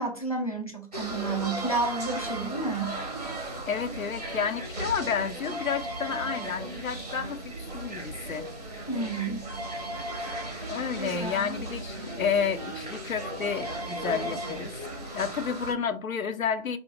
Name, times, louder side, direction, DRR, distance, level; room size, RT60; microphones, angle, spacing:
voice 1, 0.0-3.0 8.9-9.5 11.0-11.6, right 3 dB, 30° left, 0.5 m, -31 dB
sound 1, 0.9-15.7, right 1 dB, 30° right, 0.5 m, -36 dB
voice 2, 3.7-8.5 10.3-14.8 15.1-16.8, left 6 dB, 85° left, 0.6 m, -31 dB
2.8 x 2.4 x 3.6 m
figure-of-eight pair, 150°, 40 cm